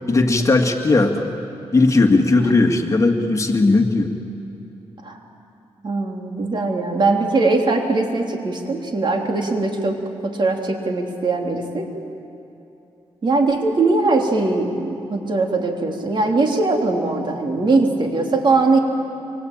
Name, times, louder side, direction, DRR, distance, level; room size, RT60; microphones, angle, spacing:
voice 1, 0.1-1.4 1.7-4.1, left 3 dB, 30° left, 4 dB, 2.1 m, -17 dB
voice 2, 5.8-11.9 13.2-18.8, right 3 dB, 50° right, 2 dB, 3.4 m, -20 dB
24.5 x 24.0 x 8.9 m, 2.9 s
cardioid pair, 85°, 10 cm